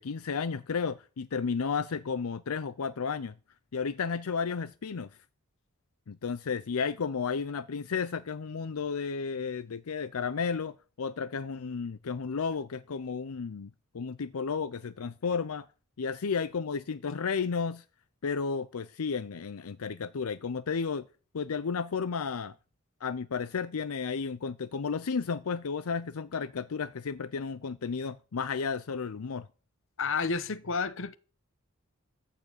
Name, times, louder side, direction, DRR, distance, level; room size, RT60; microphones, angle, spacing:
voice 1, 0.0-3.3 3.7-5.1 6.1-13.7 13.9-15.7 16.0-17.8 18.2-21.0 21.3-22.5 23.0-29.5, left 5 dB, 85° left, 0.6 m, -33 dB
voice 2, 30.0-31.2, left 5 dB, 65° left, 0.9 m, -30 dB
13.5 x 5.8 x 8.2 m
head